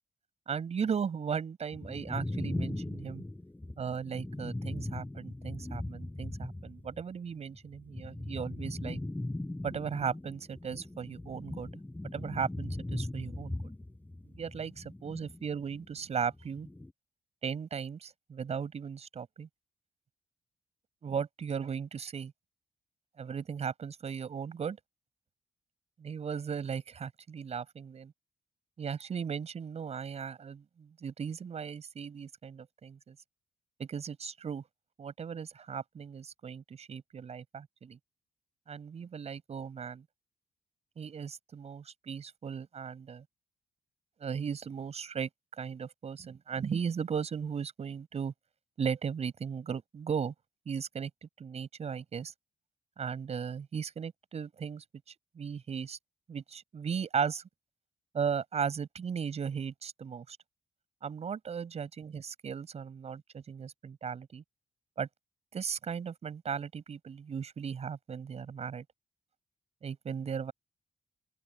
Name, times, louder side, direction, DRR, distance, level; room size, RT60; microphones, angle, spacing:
voice 1, 0.5-3.2 3.8-9.0 9.6-11.7 12.1-13.7 14.4-16.7 17.4-19.5 21.0-22.3 23.2-24.8 26.0-28.1 28.8-33.2 33.8-34.6 35.0-38.0 38.7-40.0 41.0-43.2 44.2-45.3 45.6-48.3 48.8-50.3 50.7-51.1 51.4-52.3 53.0-56.0 56.3-57.4 58.1-60.4 61.0-64.4 65.0-65.1 65.5-68.8 69.8-70.5, right 6 dB, 60° right, 7.4 m, -37 dB
sound 1, 1.7-7.0 7.3-15.9 16.2-16.9, left 1 dB, 15° left, 6.3 m, -39 dB
open air
supercardioid pair, 60°, 12 cm